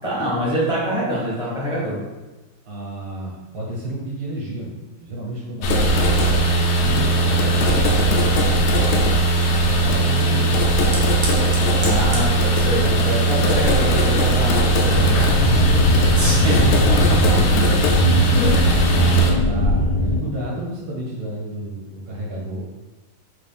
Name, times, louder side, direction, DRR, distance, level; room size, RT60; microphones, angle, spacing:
voice 1, 0.0-2.0 11.7-17.4 18.3-18.8, equal, 35° left, -8 dB, 0.5 m, -25 dB
voice 2, 0.7-1.0 2.6-8.8 9.6-10.6 16.1-16.5 18.7-22.6, right 1 dB, 75° right, -6 dB, 2.1 m, -32 dB
sound 1, 5.6-19.3, right 2 dB, 80° left, 1.4 m, -18 dB
Fire, 8.0-15.2, right 2 dB, 55° right, 0.9 m, -38 dB
sound 2, 14.9-20.2, left 2 dB, 60° left, 1.2 m, -20 dB
4.3 x 2.5 x 3.5 m, 1.2 s
omnidirectional pair, 2.3 m